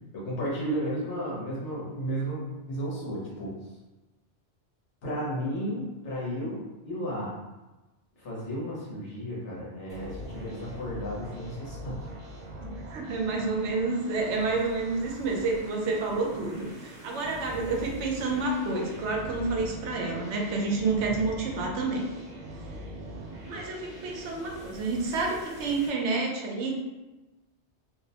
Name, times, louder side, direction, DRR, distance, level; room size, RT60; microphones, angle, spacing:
voice 1, 0.1-3.6 5.0-7.4 8.2-12.0, equal, 85° left, -6 dB, 1.3 m, -33 dB
sound 1, 9.9-25.9, right 1 dB, 55° right, 1.0 m, -43 dB
voice 2, 12.6-22.1 23.4-26.8, right 3 dB, 85° right, 0 dB, 0.9 m, -29 dB
2.8 x 2.0 x 2.8 m, 1.1 s
omnidirectional pair, 1.2 m